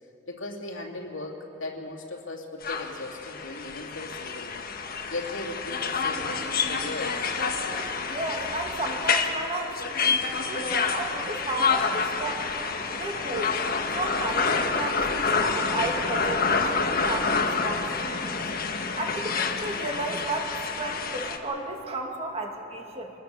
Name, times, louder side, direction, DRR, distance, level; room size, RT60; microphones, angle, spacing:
voice 1, 0.3-4.6 5.1-7.3, left 2 dB, 75° left, 0 dB, 2.8 m, -37 dB
sound 1, 2.6-21.4, left 5 dB, 50° left, 1.4 m, -28 dB
sound 2, 6.1-18.3, left 1 dB, 10° right, 2.1 m, -49 dB
voice 2, 8.1-12.5 12.9-13.6 13.9-18.5 19.0-23.1, right 2 dB, 30° right, 1 dB, 2.2 m, -33 dB
23.5 x 20.0 x 6.8 m, 2.9 s
head